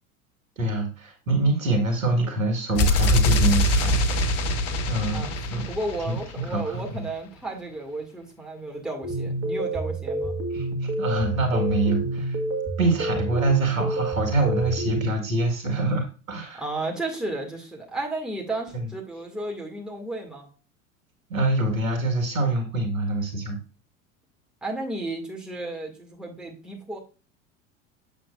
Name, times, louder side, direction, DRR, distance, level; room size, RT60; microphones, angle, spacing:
voice 1, 0.6-4.5 4.9-5.7 6.1-7.1 10.5-12.4 12.8-16.6 18.7-18.9 21.3-23.6, right 2 dB, 85° right, 4 dB, 1.7 m, -25 dB
sound 1, 2.7-6.6, left 1 dB, 35° left, 1.0 m, -23 dB
voice 2, 5.7-10.4 16.6-20.5 24.6-27.0, right 2 dB, ahead, -1 dB, 2.0 m, -33 dB
sound 2, 9.0-15.1, right 2 dB, 30° right, 1.6 m, -29 dB
7.5 x 6.7 x 2.4 m, 0.34 s
figure-of-eight pair, 80°, 40 cm